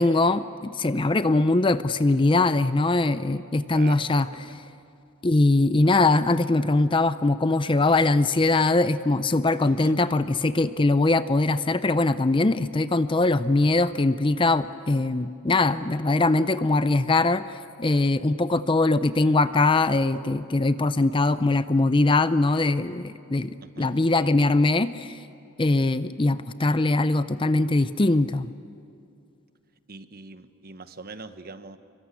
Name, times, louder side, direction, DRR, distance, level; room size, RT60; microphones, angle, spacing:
voice 1, 0.0-4.3 5.2-25.2 25.6-28.5, left 2 dB, 25° left, 13 dB, 0.5 m, -22 dB
voice 2, 3.7-4.6 9.6-10.0 23.6-24.0 29.9-31.8, right 3 dB, 45° right, 10 dB, 1.0 m, -42 dB
27.0 x 23.5 x 8.4 m, 2.5 s
head